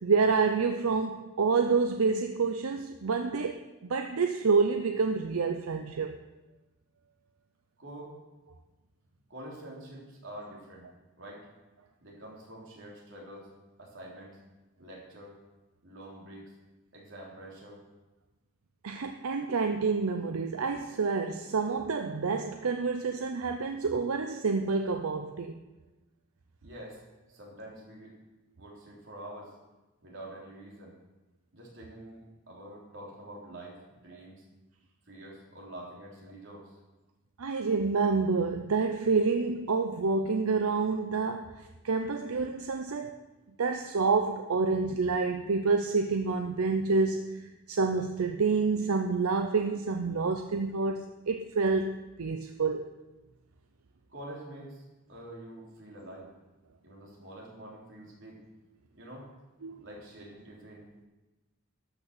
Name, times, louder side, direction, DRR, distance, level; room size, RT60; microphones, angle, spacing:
voice 1, 0.0-6.2 18.8-25.6 37.4-43.2 43.6-47.4 47.7-52.8 59.6-59.8, right 4 dB, 90° right, 6 dB, 0.6 m, -28 dB
voice 2, 7.8-8.1 9.3-10.9 11.2-11.5 12.0-13.5 13.8-14.4 14.8-15.4 15.8-16.6 16.9-17.8 26.6-27.0 27.3-28.1 28.6-29.5 30.0-30.9 31.5-34.4 35.1-36.8 54.1-56.3 56.8-58.4 58.9-59.3 59.8-61.0, right 1 dB, 60° right, -3 dB, 3.5 m, -46 dB
12.5 x 6.2 x 6.7 m, 1.1 s
head